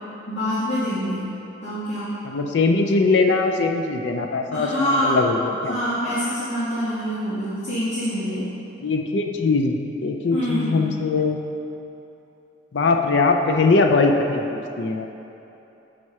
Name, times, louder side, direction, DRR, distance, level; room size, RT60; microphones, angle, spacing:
voice 1, 0.3-1.2 1.6-2.1 4.5-5.2 5.7-8.5 10.3-10.7, equal, 90° left, -11 dB, 1.8 m, -25 dB
voice 2, 2.2-5.8 8.8-11.4 12.7-15.1, left 3 dB, 70° left, 4 dB, 0.5 m, -21 dB
7.5 x 4.7 x 5.5 m, 3.0 s
head